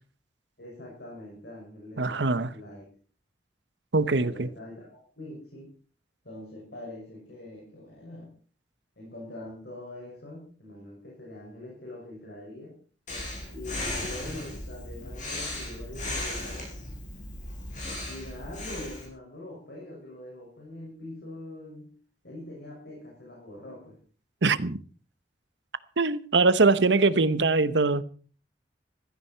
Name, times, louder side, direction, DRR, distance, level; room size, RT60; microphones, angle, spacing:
voice 1, 0.6-2.8 4.1-4.9 5.2-5.7 6.2-8.3 9.0-12.7 13.4-16.7 18.0-21.9 22.2-24.0, left 1 dB, 65° left, 6.6 m, -43 dB
voice 2, 2.0-2.5 3.9-4.5 24.4-24.8 26.0-28.0, right 3 dB, 90° right, 1.0 m, -22 dB
Breathing, 13.1-19.1, left 1 dB, 45° left, 7.0 m, -36 dB
16.0 x 14.5 x 4.6 m
head